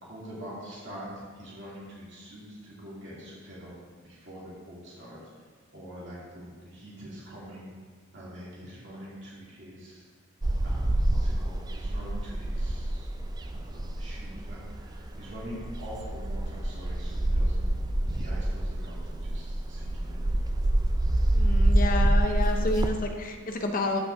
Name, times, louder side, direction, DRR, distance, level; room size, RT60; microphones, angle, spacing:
voice 1, 0.0-3.7 4.0-5.2 5.7-7.7 8.1-10.1 10.6-13.1 13.5-17.7 18.0-20.3, equal, 55° right, -7 dB, 2.7 m, -44 dB
sound 1, 10.4-22.9, right 1 dB, 20° right, 0.3 m, -27 dB
voice 2, 21.3-24.0, left 2 dB, 40° left, 4 dB, 0.7 m, -29 dB
14.0 x 5.9 x 2.7 m, 1.5 s
head